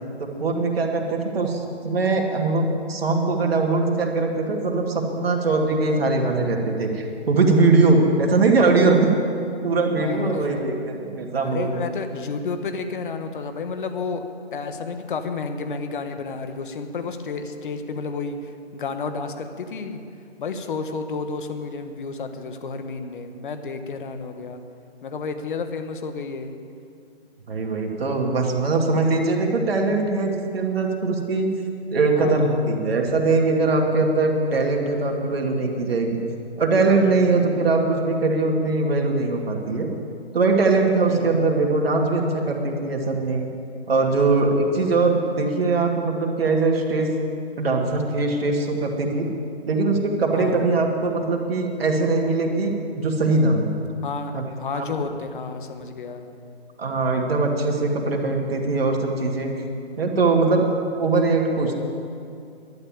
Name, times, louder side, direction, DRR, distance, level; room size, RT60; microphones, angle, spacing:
voice 1, 0.2-9.1 9.6-11.7 27.5-31.5 31.9-36.2 36.6-39.9 40.3-43.5 43.9-47.1 47.6-49.3 49.7-53.7 54.3-54.5 54.7-54.9 56.8-59.5 60.0-60.7 61.0-61.7, right 3 dB, 60° right, 1 dB, 2.2 m, -21 dB
voice 2, 10.0-10.6 11.5-14.2 14.5-20.0 20.4-24.6 25.0-26.5 32.2-32.7 37.0-37.5 41.0-41.4 50.3-50.8 54.0-56.3, left 4 dB, 50° left, 7 dB, 1.3 m, -31 dB
12.0 x 9.0 x 8.7 m, 2.5 s
hypercardioid pair, 150°, 33 cm